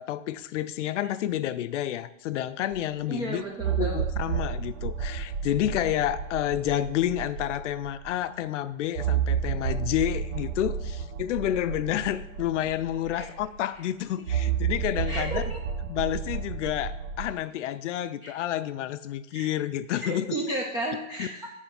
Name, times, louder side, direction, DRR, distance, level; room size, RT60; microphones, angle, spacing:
voice 1, 0.0-3.4 3.8-15.4 15.9-20.4 21.2-21.3, left 12 dB, 65° left, 14 dB, 0.5 m, -29 dB
sound 1, 2.7-2.8 3.6-8.1 8.9-13.6 14.3-17.3, right 8 dB, 55° right, 0.8 m, -31 dB
voice 2, 3.1-4.0 13.1-13.3 15.1-15.6 18.2-18.3 19.3-19.5 20.0-21.5, right 1 dB, 10° right, -1 dB, 0.4 m, -33 dB
7.1 x 4.3 x 5.8 m, 0.88 s
hypercardioid pair, 140°, 40 cm